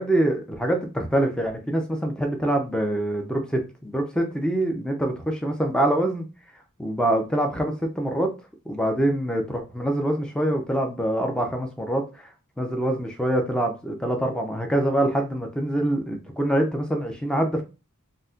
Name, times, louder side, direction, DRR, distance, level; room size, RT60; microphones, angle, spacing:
voice 1, 0.0-6.3 6.8-8.3 8.7-12.3 12.6-17.6, right 1 dB, 5° left, 3 dB, 0.5 m, -25 dB
4.0 x 2.1 x 2.4 m, 0.30 s
head